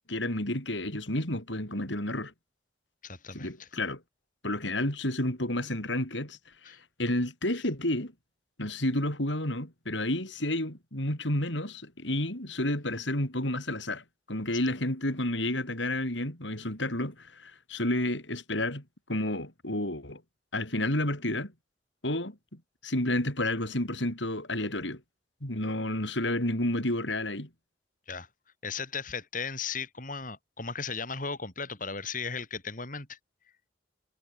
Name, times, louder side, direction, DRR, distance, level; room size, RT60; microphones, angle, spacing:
voice 1, 0.1-2.3 3.3-4.0 4.4-8.1 8.6-18.8 19.1-20.2 20.5-21.5 22.0-25.0 25.4-27.5, left 1 dB, 75° left, 7.7 m, -31 dB
voice 2, 3.0-3.7 6.6-6.8 28.1-28.3 28.6-33.2, left 5 dB, 45° left, 5.2 m, -36 dB
head